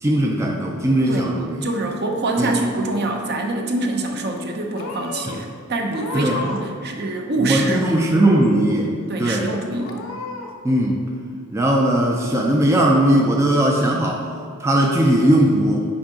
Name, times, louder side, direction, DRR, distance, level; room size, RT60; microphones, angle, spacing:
voice 1, 0.0-1.7 2.4-2.6 5.3-5.4 6.1-6.4 7.4-8.9 9.2-9.5 10.6-11.0 11.5-14.3 14.6-15.9, right 1 dB, 15° right, -1 dB, 0.4 m, -18 dB
voice 2, 1.6-7.9 9.1-10.0, right 2 dB, 50° right, 2 dB, 0.8 m, -25 dB
Purr / Meow, 2.0-2.8 3.1-3.7 4.3-4.5 4.7-5.4 5.9-6.7 7.0-7.8 8.2-8.8 9.2-9.3 9.8-10.5, left 4 dB, 75° left, 0.7 m, -34 dB
6.0 x 4.8 x 5.1 m, 2.2 s
head